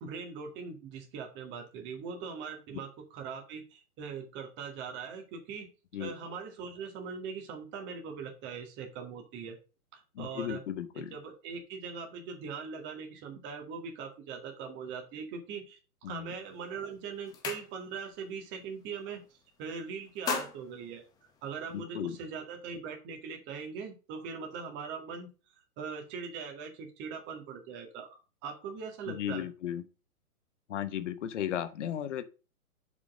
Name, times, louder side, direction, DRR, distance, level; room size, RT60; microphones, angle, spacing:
voice 1, 0.0-5.7 6.0-9.6 9.9-10.6 11.0-19.2 19.6-21.0 21.4-25.3 25.8-29.5, right 5 dB, 25° right, 2.0 m, -41 dB
voice 2, 10.1-11.1 16.0-16.3 21.7-22.2 29.1-29.8 30.7-32.2, left 10 dB, 50° left, 1.0 m, -35 dB
sound 1, 16.4-16.7 17.0-18.2 18.5-18.8 19.1-19.6 20.0-21.8, left 4 dB, 10° left, 0.6 m, -38 dB
7.3 x 5.0 x 4.9 m
hypercardioid pair, 130°, 44 cm